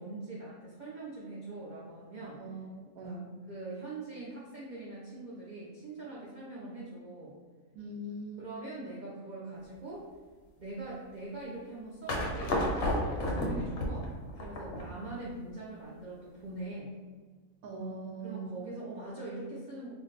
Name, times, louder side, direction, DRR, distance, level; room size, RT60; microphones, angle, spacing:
voice 1, 0.0-2.4 3.0-3.2 3.5-7.4 8.4-10.1 10.6-14.1 14.4-16.9 18.2-19.9, right 2 dB, 55° right, -6 dB, 0.5 m, -42 dB
voice 2, 2.3-3.3 7.7-8.4 17.6-18.5, right 2 dB, 90° right, 1 dB, 1.1 m, -41 dB
sound 1, 12.1-15.1, left 1 dB, 65° left, 0.8 m, -32 dB
2.5 x 2.1 x 3.8 m, 1.5 s
omnidirectional pair, 1.4 m